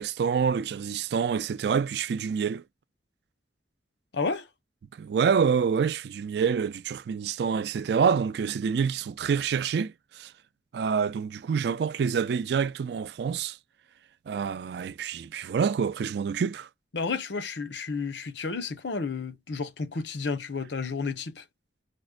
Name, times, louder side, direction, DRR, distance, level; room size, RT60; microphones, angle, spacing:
voice 1, 0.0-2.6 5.0-10.3 10.7-13.6 14.3-16.7, right 6 dB, 70° right, 0.3 m, -27 dB
voice 2, 4.1-4.5 16.9-21.4, left 4 dB, 80° left, 0.8 m, -31 dB
5.1 x 2.1 x 2.3 m
head